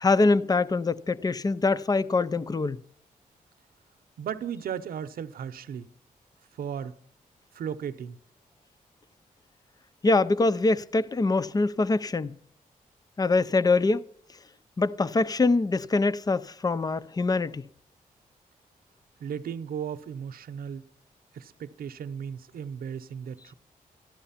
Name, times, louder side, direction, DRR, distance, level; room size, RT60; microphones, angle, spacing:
voice 1, 0.0-2.8 10.0-12.4 13.2-14.0 14.8-17.7, left 3 dB, 25° left, 0.5 m, -24 dB
voice 2, 4.2-5.9 6.6-6.9 7.5-8.2 19.2-20.8 21.3-23.5, right 8 dB, 85° right, 0.7 m, -35 dB
13.5 x 11.0 x 5.7 m
cardioid pair, 95°, 15 cm